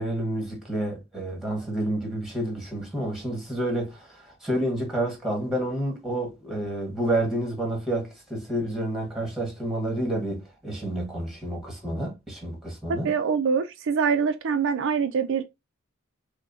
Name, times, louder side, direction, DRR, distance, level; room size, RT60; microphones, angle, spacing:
voice 1, 0.0-13.1, right 1 dB, ahead, 1.4 m, -29 dB
voice 2, 12.9-15.4, right 6 dB, 60° right, 0.4 m, -24 dB
6.1 x 2.1 x 2.6 m
head